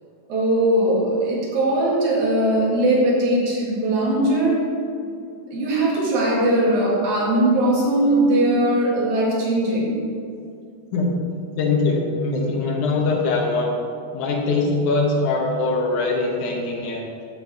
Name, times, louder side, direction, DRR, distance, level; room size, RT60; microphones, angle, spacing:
voice 1, 0.3-4.7 5.5-10.0, right 1 dB, 80° right, -5 dB, 3.4 m, -20 dB
voice 2, 11.6-13.7 14.1-17.0, left 3 dB, 90° left, 0 dB, 2.7 m, -22 dB
12.5 x 4.4 x 4.7 m, 2.3 s
omnidirectional pair, 3.3 m